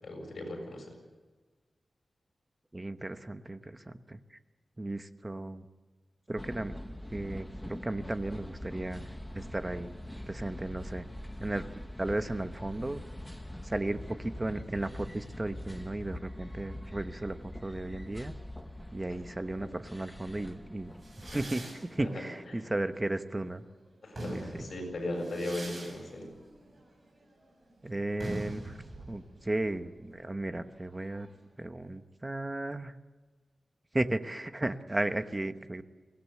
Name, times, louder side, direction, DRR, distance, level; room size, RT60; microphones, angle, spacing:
voice 1, 0.0-0.9 19.1-19.2 19.6-19.7 22.0-22.2 22.6-22.7 24.0-26.3, left 1 dB, 60° left, 2 dB, 7.3 m, -37 dB
voice 2, 2.7-4.2 4.8-5.6 6.3-6.8 7.1-9.9 10.3-11.0 11.4-11.6 12.0-13.0 13.6-18.4 18.9-20.9 21.3-21.6 21.9-23.6 24.3-24.7 27.8-28.7 29.1-31.3 31.6-32.9 33.9-35.8, right 2 dB, 20° right, 9 dB, 1.0 m, -35 dB
sound 1, 6.4-21.5, left 1 dB, 5° left, 1.2 m, -43 dB
sound 2, 21.0-23.5 23.9-31.4, right 2 dB, 40° right, 7.3 m, -45 dB
23.0 x 17.5 x 8.5 m, 1.3 s
wide cardioid pair, 145°, 0 cm